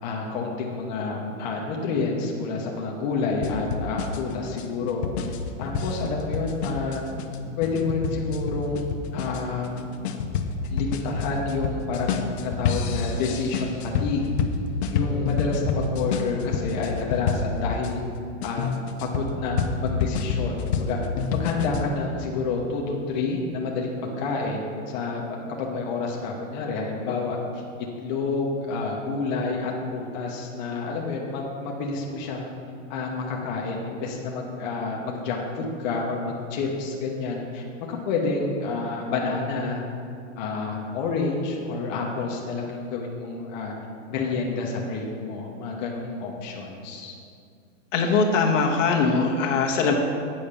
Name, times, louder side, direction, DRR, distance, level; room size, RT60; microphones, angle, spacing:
voice 1, 0.0-7.0 7.6-9.9 10.7-14.3 14.9-18.0 18.4-18.7 19.0-21.0 21.3-27.6 28.0-32.5 32.9-39.8 40.4-43.7 44.1-47.1, left 4 dB, 35° left, -1 dB, 1.0 m, -29 dB
sound 1, 3.4-17.9 18.4-21.9, left 5 dB, 60° left, 0.7 m, -28 dB
sound 2, 15.0-17.6, left 6 dB, 20° left, 0.6 m, -36 dB
voice 2, 47.9-49.9, left 4 dB, 75° left, 0 dB, 1.3 m, -21 dB
8.7 x 4.3 x 6.7 m, 2.4 s
supercardioid pair, 170°, 38 cm